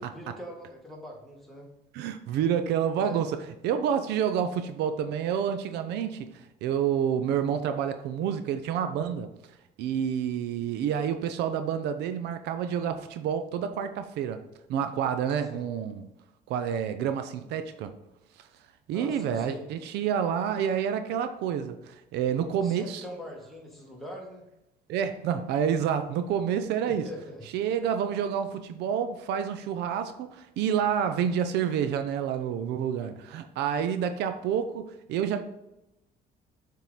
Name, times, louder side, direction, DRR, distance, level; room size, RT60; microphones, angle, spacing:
voice 1, 0.0-1.7 2.9-3.2 15.2-15.7 18.9-19.7 22.6-24.4 26.8-27.5, equal, ahead, -2 dB, 1.7 m, -42 dB
voice 2, 1.9-3.3 3.6-9.3 9.8-14.4 14.7-16.0 16.5-17.9 18.9-23.0 24.9-27.1 27.5-35.4, right 8 dB, 80° right, 9 dB, 0.6 m, -28 dB
7.3 x 3.7 x 4.0 m, 0.90 s
cardioid pair, 110°, 17 cm